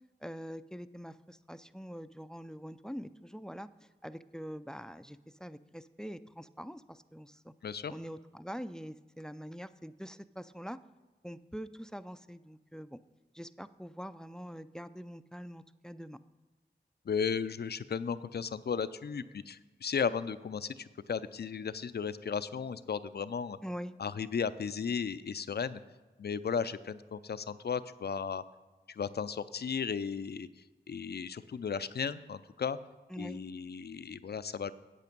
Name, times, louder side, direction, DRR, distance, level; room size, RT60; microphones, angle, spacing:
voice 1, 0.2-7.5 7.9-10.8 11.2-13.0 13.3-16.2 23.6-24.0 33.1-33.4, equal, 5° left, 14 dB, 0.4 m, -44 dB
voice 2, 7.6-7.9 17.1-23.6 24.0-25.8 26.2-28.4 28.9-30.5 30.9-32.8 33.2-34.7, left 6 dB, 65° left, 14 dB, 0.4 m, -35 dB
8.4 x 8.2 x 5.2 m, 1.2 s
cardioid pair, 45°, 18 cm